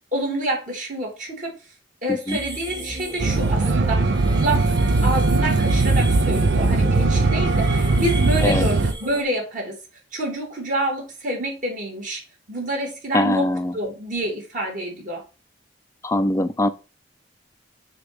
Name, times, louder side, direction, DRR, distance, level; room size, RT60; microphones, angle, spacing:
voice 1, 0.1-1.6 2.0-4.8 5.0-9.8 10.1-12.2 12.5-15.2, right 1 dB, 45° right, 2.9 m, -27 dB
sound 1, 2.3-9.2, right 2 dB, 25° right, 1.4 m, -35 dB
sound 2, 3.2-8.9, right 3 dB, 85° right, 0.6 m, -19 dB
voice 2, 13.1-13.7 16.0-16.7, left 1 dB, 15° left, 0.4 m, -22 dB
6.6 x 3.0 x 5.2 m
head